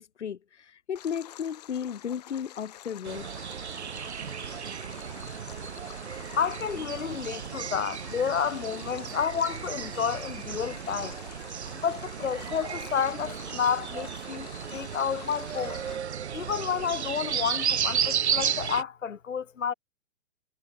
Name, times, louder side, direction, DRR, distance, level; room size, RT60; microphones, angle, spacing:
voice 1, 0.0-3.3, left 8 dB, 65° left, 3.1 m, -34 dB
Stream, 1.0-16.0, left 13 dB, 35° left, 6.3 m, -48 dB
sound 1, 3.0-18.8, right 8 dB, 60° right, 3.9 m, -34 dB
voice 2, 6.4-11.2 11.8-15.8 16.3-19.7, left 7 dB, 90° left, 5.6 m, -30 dB
hypercardioid pair, 180°, 37 cm